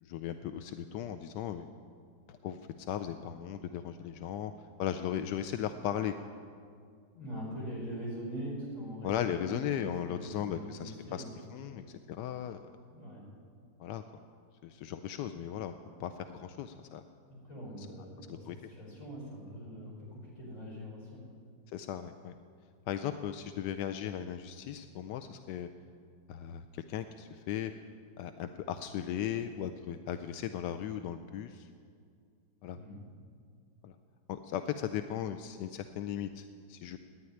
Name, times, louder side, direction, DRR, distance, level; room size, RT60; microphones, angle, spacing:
voice 1, 0.0-1.7 2.3-2.6 2.9-4.5 4.8-6.1 9.0-11.2 11.5-12.6 13.8-14.0 14.6-15.7 16.0-17.0 18.2-18.6 21.7-22.3 22.9-25.7 26.3-27.7 28.2-31.7 32.6-32.8 33.8-33.9 34.3-37.0, left 10 dB, 75° left, 9 dB, 1.1 m, -37 dB
voice 2, 7.1-9.1 9.4-9.6 10.0-11.3 11.6-11.9 12.9-13.2 17.4-21.3 32.7-33.0, equal, 40° left, -5 dB, 6.0 m, -43 dB
14.5 x 9.8 x 9.9 m, 2.2 s
omnidirectional pair, 2.2 m